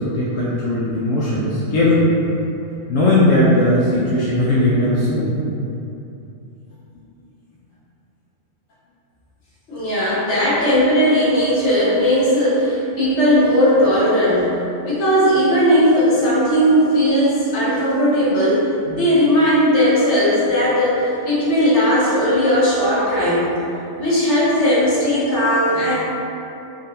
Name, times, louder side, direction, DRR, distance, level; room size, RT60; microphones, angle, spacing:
voice 1, 0.0-2.1 2.9-5.4, left 1 dB, 90° left, -7 dB, 1.0 m, -18 dB
voice 2, 9.7-14.5 14.8-23.5 24.0-25.9, equal, 65° left, -9 dB, 1.2 m, -17 dB
3.7 x 2.4 x 2.7 m, 2.8 s
omnidirectional pair, 1.3 m